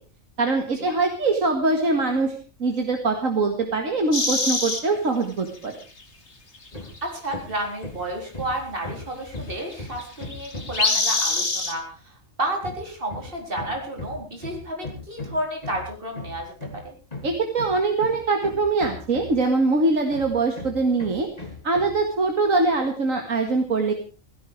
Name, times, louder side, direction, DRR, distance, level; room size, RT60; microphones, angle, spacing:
voice 1, 0.4-5.7 17.2-21.3 21.6-23.9, right 3 dB, 75° right, 4 dB, 2.3 m, -23 dB
sound 1, 4.1-4.8 6.0-6.1 6.6-6.7 7.0-7.1 9.7-9.8 10.0-11.7, left 3 dB, 55° left, 2.6 m, -24 dB
Hammer, 6.7-7.0 7.3-10.9 12.6-19.6 20.1-22.0, left 2 dB, 30° left, 3.1 m, -38 dB
voice 2, 7.0-16.9, right 1 dB, 40° right, 1 dB, 4.5 m, -31 dB
16.5 x 16.0 x 4.7 m, 0.38 s
omnidirectional pair, 1.4 m